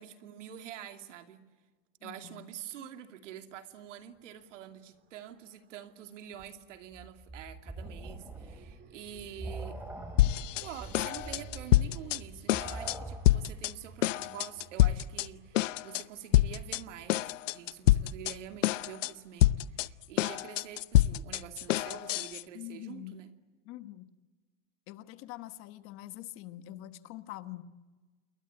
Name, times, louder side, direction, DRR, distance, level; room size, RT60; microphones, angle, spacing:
voice 1, 0.0-1.4 2.0-9.8 10.6-23.3, right 10 dB, 75° right, 7 dB, 2.7 m, -46 dB
voice 2, 2.0-2.4 22.5-23.1 23.7-24.0 24.9-27.6, left 15 dB, 35° left, 12 dB, 1.2 m, -44 dB
sound 1, 3.9-6.4 8.0-20.3, right 7 dB, 30° right, 3.0 m, -57 dB
sound 2, 6.4-13.5, right 2 dB, 5° right, 2.7 m, -44 dB
sound 3, 10.2-10.7 10.9-12.2 12.5-13.0 13.3-13.7 14.0-15.3 15.6-16.0 16.3-16.8 17.1-18.3 18.6-19.1 19.4-22.4, left 15 dB, 80° left, 0.8 m, -26 dB
29.0 x 22.0 x 8.8 m, 1.4 s
supercardioid pair, 145°, 37 cm